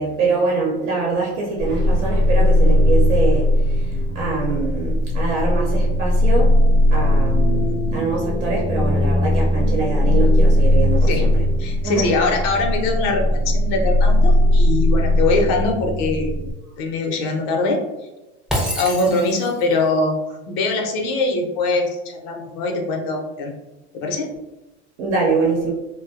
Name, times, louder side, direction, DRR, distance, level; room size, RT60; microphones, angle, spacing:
voice 1, 0.0-6.5 6.9-11.4 11.8-12.1 25.0-25.7, right 3 dB, 80° right, -3 dB, 0.8 m, -24 dB
sound 1, 1.6-16.5, left 1 dB, 45° right, 0.9 m, -18 dB
voice 2, 11.6-16.3 16.8-17.8 18.8-20.2 20.5-23.5 24.0-24.3, left 3 dB, 65° left, 2 dB, 0.7 m, -22 dB
Shatter, 18.5-19.7, equal, ahead, 0.5 m, -26 dB
2.4 x 2.2 x 2.5 m, 1.0 s
hypercardioid pair, 95°, 35 cm